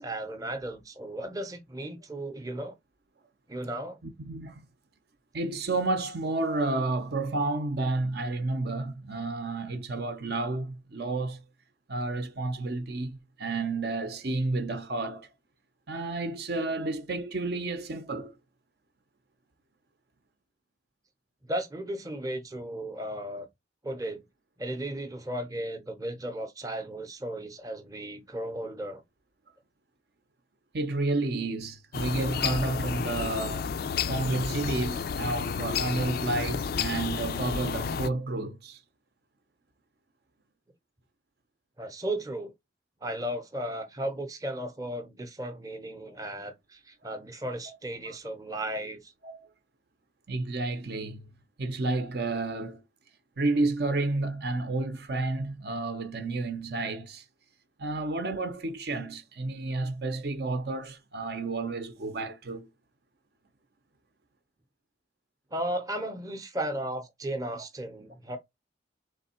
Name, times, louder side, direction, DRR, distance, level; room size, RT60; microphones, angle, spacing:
voice 1, 0.0-2.7 3.5-4.0 21.4-23.5 23.8-24.2 24.6-29.0 41.8-42.5 43.0-49.1 65.5-68.4, right 1 dB, 20° right, 0.7 m, -35 dB
voice 2, 4.2-4.6 5.3-11.4 11.9-15.3 15.9-18.4 30.7-33.7 34.1-38.8 48.0-48.2 49.2-49.5 50.3-51.3 51.6-52.8 53.4-57.2 57.8-62.7, right 2 dB, 55° right, 0.6 m, -31 dB
sound 1, 31.9-38.1, left 6 dB, 55° left, 0.3 m, -31 dB
3.5 x 3.3 x 4.2 m
head